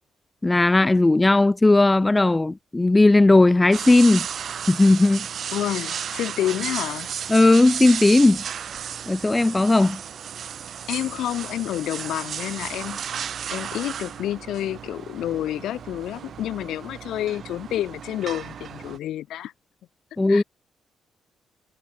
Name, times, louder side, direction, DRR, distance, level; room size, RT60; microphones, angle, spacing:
voice 1, 0.4-4.3 4.7-5.3 7.3-8.4 9.1-10.0 20.2-20.4, left 2 dB, 15° left, 0.5 m, -17 dB
sound 1, 3.7-19.0, right 8 dB, 55° right, 0.5 m, -34 dB
voice 2, 5.5-7.1 10.9-13.1 13.5-19.5 20.3-20.4, left 12 dB, 80° left, 1.5 m, -29 dB
cardioid pair, 90°, 0 cm